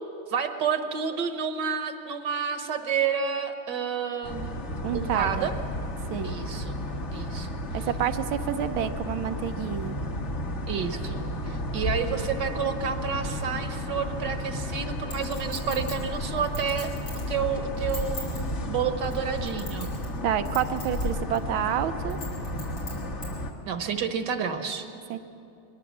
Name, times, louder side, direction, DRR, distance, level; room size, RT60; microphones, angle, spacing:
voice 1, 0.3-4.6 4.9-5.5 6.2-6.8 7.1-7.5 10.7-16.9 17.3-19.9 23.6-24.9, right 6 dB, 60° right, 7 dB, 1.6 m, -30 dB
sound 1, 4.2-23.5, left 1 dB, 40° left, 1.3 m, -33 dB
voice 2, 4.8-5.5 6.1-6.3 7.7-10.0 20.2-22.2 25.1-25.2, right 10 dB, 75° right, 10 dB, 1.6 m, -28 dB
Chink clink, 15.1-17.3 17.8-18.4 19.0-20.2 20.5-21.0 21.4-21.5 22.1-23.3 23.8-23.9, left 2 dB, 85° left, 6.2 m, -40 dB
22.0 x 18.0 x 7.2 m, 2.7 s
omnidirectional pair, 2.4 m